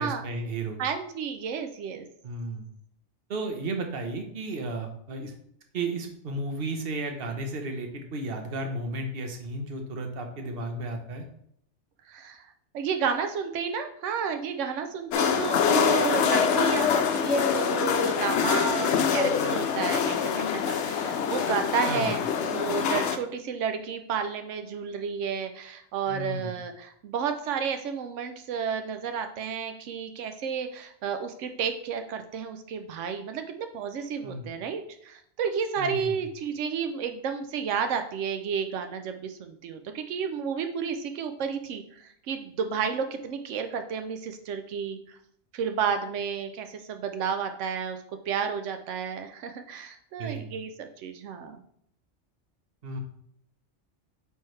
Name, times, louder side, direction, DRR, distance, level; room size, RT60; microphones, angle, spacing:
voice 1, 0.0-0.8 2.2-2.7 3.3-5.3 5.7-11.2 21.9-22.1 26.1-26.5 34.2-34.5 35.8-36.1 50.2-50.5 52.8-53.0, right 2 dB, 55° right, 4 dB, 1.1 m, -33 dB
voice 2, 0.8-2.0 12.1-12.5 12.7-45.2 45.5-48.0 48.3-51.6, right 6 dB, 90° right, 7 dB, 0.9 m, -31 dB
sound 1, 15.1-23.2, left 7 dB, 75° left, 0.9 m, -25 dB
8.8 x 3.4 x 3.2 m, 0.69 s
omnidirectional pair, 1.2 m